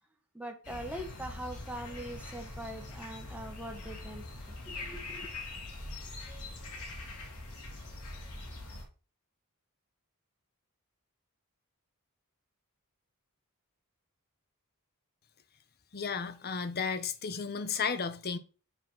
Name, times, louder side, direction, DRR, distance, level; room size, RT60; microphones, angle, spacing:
voice 1, 0.3-5.3, right 1 dB, 5° right, 1.2 m, -42 dB
sound 1, 0.6-8.8, left 2 dB, 85° left, 2.6 m, -43 dB
voice 2, 15.9-18.4, left 5 dB, 45° left, 0.8 m, -33 dB
7.1 x 4.1 x 5.5 m
head